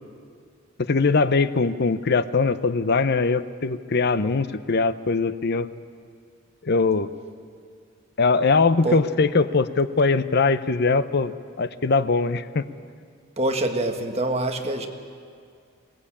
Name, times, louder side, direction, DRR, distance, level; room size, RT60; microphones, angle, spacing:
voice 1, 0.9-5.7 6.6-7.1 8.2-12.6, left 4 dB, 55° left, 13 dB, 0.7 m, -21 dB
voice 2, 13.4-14.9, right 1 dB, 30° right, 4 dB, 1.5 m, -25 dB
22.0 x 18.5 x 8.6 m, 2.2 s
head